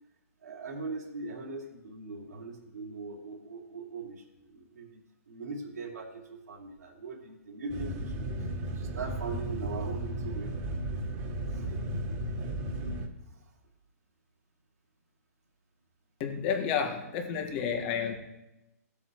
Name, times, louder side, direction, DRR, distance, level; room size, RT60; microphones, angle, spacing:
voice 1, 0.4-5.0 5.3-10.5 11.5-11.7 13.3-13.5, right 3 dB, 85° right, 3.1 m, -41 dB
sound 1, 7.7-13.1, right 1 dB, 35° right, 2.0 m, -34 dB
voice 2, 16.2-18.2, left 7 dB, 40° left, 1.8 m, -30 dB
16.5 x 8.4 x 3.1 m
hypercardioid pair, 140°, 9 cm